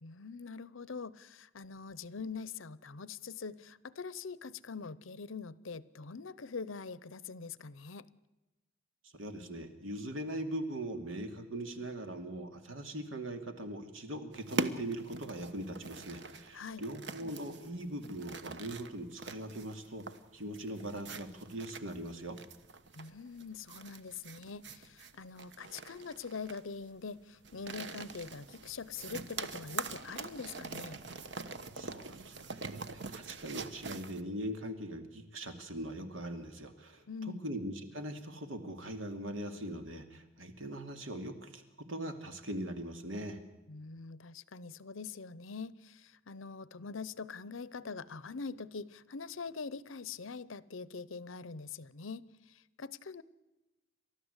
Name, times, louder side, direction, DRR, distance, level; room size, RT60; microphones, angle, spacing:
voice 1, 0.0-8.0 16.5-16.8 23.0-31.0 37.1-37.4 43.7-53.2, left 5 dB, 90° left, 19 dB, 0.8 m, -44 dB
voice 2, 9.0-20.1 20.3-22.4 31.7-37.0 37.4-43.4, right 1 dB, 85° right, 6 dB, 2.6 m, -41 dB
sound 1, 14.3-34.2, right 3 dB, 60° right, 1.1 m, -43 dB
30.0 x 13.0 x 8.2 m, 1.1 s
head